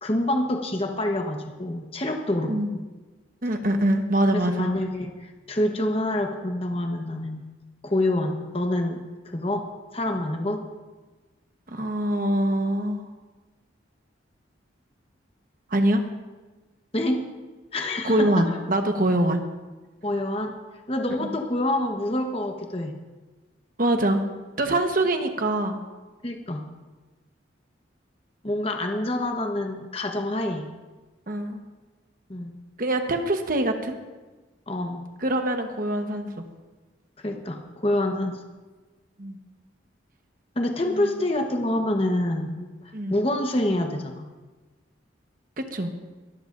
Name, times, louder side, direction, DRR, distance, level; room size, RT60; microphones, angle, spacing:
voice 1, 0.0-2.8 4.3-7.5 7.8-9.7 9.9-10.6 16.9-17.2 17.7-18.6 20.0-20.5 20.9-22.9 26.2-26.6 28.4-30.7 32.3-32.6 34.7-35.0 37.2-38.4 40.6-44.3, left 1 dB, 30° left, 3 dB, 1.1 m, -27 dB
voice 2, 3.4-4.7 11.7-13.0 15.7-16.0 18.0-19.4 21.2-21.3 23.8-24.2 24.6-25.8 31.3-31.6 32.8-34.0 35.2-36.4 39.2-39.4 40.9-41.1 42.9-43.2 45.7-45.9, right 1 dB, 45° right, 5 dB, 1.1 m, -24 dB
22.5 x 13.0 x 2.6 m, 1.2 s
head